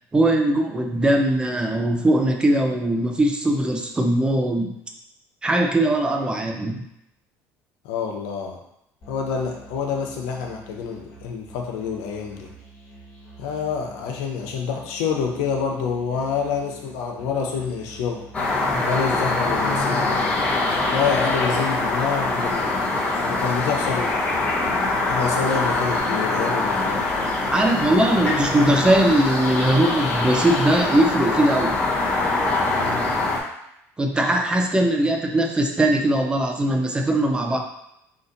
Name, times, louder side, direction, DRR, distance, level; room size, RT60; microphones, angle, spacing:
voice 1, 0.1-4.7 5.4-6.8 18.7-18.9 27.5-31.8 34.0-37.6, right 1 dB, 15° right, 3 dB, 0.5 m, -20 dB
voice 2, 7.8-8.6 9.1-12.5 13.4-18.3 18.8-20.3 20.9-24.1 25.1-27.1 32.8-33.2, left 6 dB, 90° left, 1 dB, 0.8 m, -27 dB
Musical instrument, 9.0-26.0, right 2 dB, 35° left, 1.3 m, -46 dB
sound 1, 18.3-33.4, left 2 dB, 20° left, 0.9 m, -23 dB
4.0 x 2.6 x 4.0 m, 0.80 s
cardioid pair, 135°, 6 cm